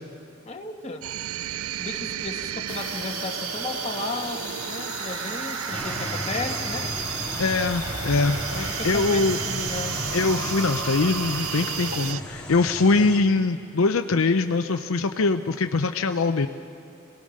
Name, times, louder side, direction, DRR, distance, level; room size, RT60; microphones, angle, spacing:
voice 1, 0.4-1.1 1.8-7.0 8.5-10.0, left 3 dB, 30° left, 2 dB, 1.5 m, -34 dB
cyberinsane paulstretch, 1.0-12.2, right 11 dB, 75° right, 0.4 m, -32 dB
sound 1, 2.7-12.1, left 8 dB, 85° left, 1.4 m, -38 dB
sound 2, 5.7-13.2, equal, 5° left, 2.2 m, -35 dB
voice 2, 7.4-9.4 10.1-16.5, left 3 dB, 70° left, 7 dB, 0.6 m, -23 dB
28.0 x 18.5 x 6.5 m, 2.8 s
head